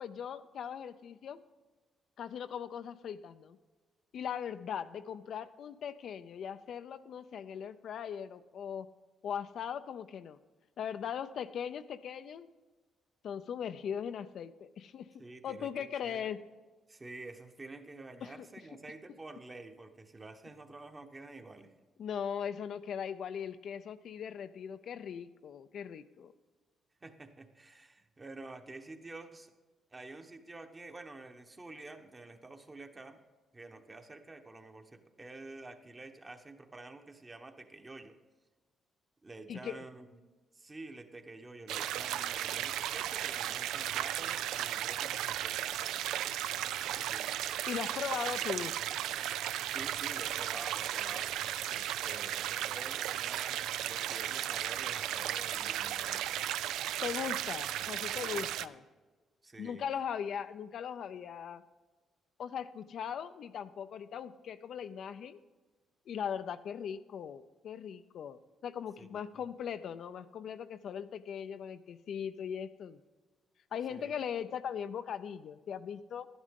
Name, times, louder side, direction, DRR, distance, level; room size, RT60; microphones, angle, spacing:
voice 1, 0.0-1.4 2.2-3.6 4.1-8.9 9.2-10.4 10.8-12.5 13.2-15.1 15.4-16.4 18.2-18.3 22.0-26.3 39.5-39.8 47.7-48.8 57.0-58.8 59.6-61.6 62.4-65.4 66.1-73.0 73.7-76.3, left 8 dB, 65° left, 11 dB, 0.5 m, -39 dB
voice 2, 15.2-16.3 16.9-21.7 27.0-29.5 29.9-33.2 33.5-38.2 39.2-40.2 40.5-46.0 46.8-47.4 49.7-51.4 51.7-56.2 58.2-58.8 59.4-59.9 69.0-69.1 69.3-69.4 73.9-74.1, right 2 dB, 25° right, 5 dB, 1.1 m, -49 dB
sound 1, 41.7-58.7, right 12 dB, 90° right, 0.3 m, -35 dB
11.5 x 11.0 x 3.7 m, 1.3 s
cardioid pair, 90°, 0 cm